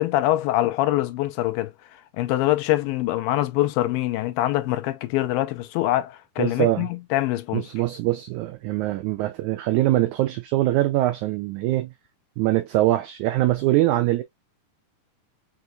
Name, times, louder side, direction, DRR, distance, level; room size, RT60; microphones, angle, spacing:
voice 1, 0.0-1.7 2.2-7.7, left 15 dB, 85° left, 2.4 m, -24 dB
voice 2, 6.4-6.9 7.5-11.9 12.4-14.2, right 16 dB, 90° right, 1.7 m, -23 dB
6.3 x 2.6 x 2.2 m
omnidirectional pair, 4.0 m